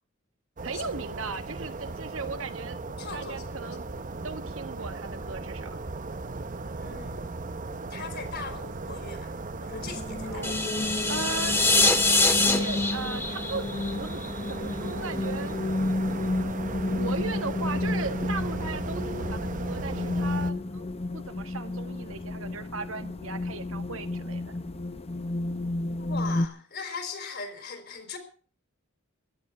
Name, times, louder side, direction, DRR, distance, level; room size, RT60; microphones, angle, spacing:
sound 1, 0.6-20.5, right 3 dB, 40° right, 0.8 m, -37 dB
voice 1, 0.6-2.8 3.1-5.8 10.2-10.6 11.1-11.6 12.5-13.7 14.0-14.2 14.5-15.6 17.0-20.9 21.1-24.5, right 4 dB, 85° right, 9 dB, 1.5 m, -37 dB
voice 2, 3.0-3.7 6.8-7.3 7.9-9.3 9.6-10.4 26.0-28.2, left 4 dB, 55° left, 7 dB, 4.1 m, -39 dB
sound 2, 9.7-26.5, left 2 dB, 30° left, 0.7 m, -32 dB
sound 3, 10.4-14.5, left 3 dB, 10° left, 1.7 m, -24 dB
16.0 x 12.0 x 5.6 m, 0.42 s
head